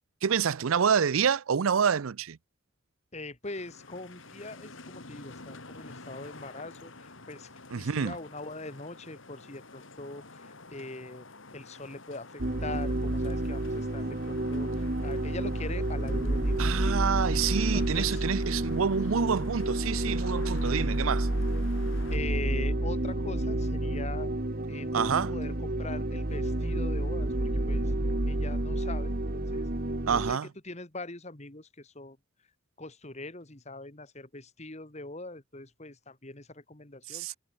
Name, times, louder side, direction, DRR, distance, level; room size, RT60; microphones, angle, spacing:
voice 1, 0.2-2.4 7.7-8.2 16.6-21.3 24.9-25.3 30.1-30.5 37.1-37.3, right 7 dB, 85° right, 0.5 m, -27 dB
voice 2, 3.1-7.5 7.8-11.3 11.5-17.0 17.7-18.2 22.1-24.3 24.7-27.9 28.3-29.7 30.1-30.4 30.6-32.2 32.8-37.4, left 2 dB, 35° left, 2.0 m, -42 dB
sound 1, 3.4-22.2, left 3 dB, 70° left, 3.6 m, -49 dB
sound 2, 12.4-30.3, right 1 dB, 45° right, 1.5 m, -29 dB
head